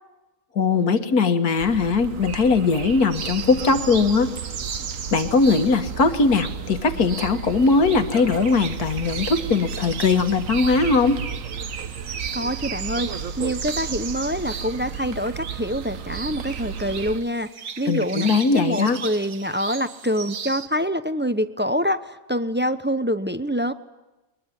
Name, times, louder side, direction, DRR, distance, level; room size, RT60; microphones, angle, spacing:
voice 1, 0.6-4.3 5.1-11.2 17.9-19.0, left 4 dB, 75° left, 8 dB, 2.1 m, -20 dB
sound 1, 1.6-17.2, right 6 dB, 60° right, 1.4 m, -34 dB
sound 2, 3.1-20.7, right 6 dB, 80° right, 1.9 m, -37 dB
voice 2, 12.3-17.5 17.8-23.7, equal, 15° right, 12 dB, 0.4 m, -26 dB
22.0 x 21.0 x 10.0 m, 1.1 s
omnidirectional pair, 1.6 m